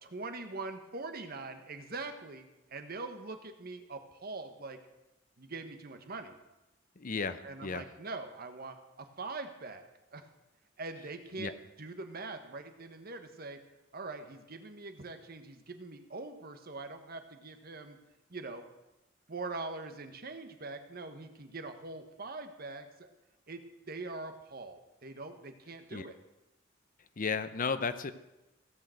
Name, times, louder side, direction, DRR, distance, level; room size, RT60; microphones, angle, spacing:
voice 1, 0.0-2.4 2.7-4.8 5.4-6.3 7.4-9.8 10.1-10.3 10.8-11.5 11.8-13.6 13.9-18.0 18.3-18.6 19.3-23.1 23.5-26.2, right 3 dB, 50° right, 7 dB, 1.3 m, -43 dB
voice 2, 7.0-7.8 11.4-11.5 25.9-26.1 27.2-28.1, left 5 dB, 45° left, 12 dB, 0.7 m, -34 dB
16.0 x 6.7 x 7.8 m, 0.99 s
head